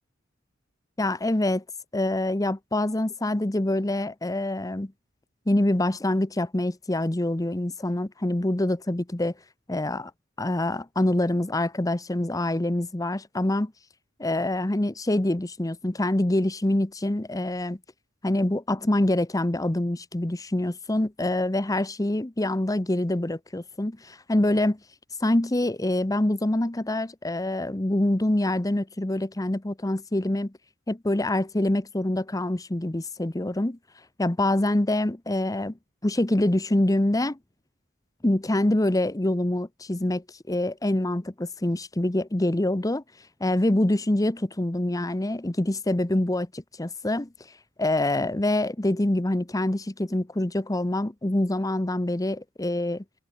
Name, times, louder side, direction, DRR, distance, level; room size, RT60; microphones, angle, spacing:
voice 1, 1.0-1.6 1.9-4.9 5.5-9.3 9.7-10.1 10.4-13.7 14.2-17.8 18.2-24.8 25.2-30.5 30.9-33.8 34.2-35.7 36.0-37.4 38.2-43.0 43.4-47.3 47.8-53.0, left 1 dB, 20° left, 0.8 m, -25 dB
head